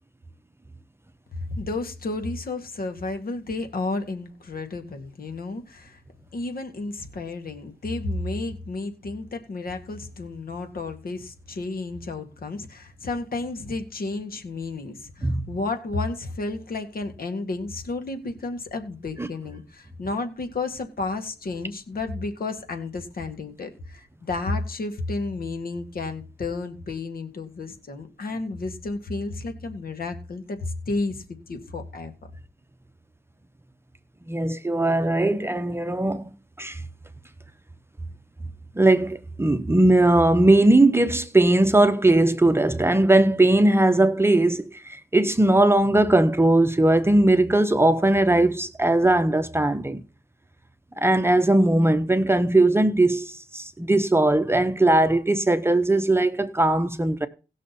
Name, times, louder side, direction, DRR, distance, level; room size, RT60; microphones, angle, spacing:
voice 1, 1.4-6.0 6.3-32.1, left 3 dB, 65° left, 2.0 m, -32 dB
voice 2, 34.3-36.8 38.8-50.0 51.0-57.3, right 2 dB, 15° right, 0.8 m, -19 dB
18.0 x 6.4 x 4.2 m
wide cardioid pair, 110°, 16 cm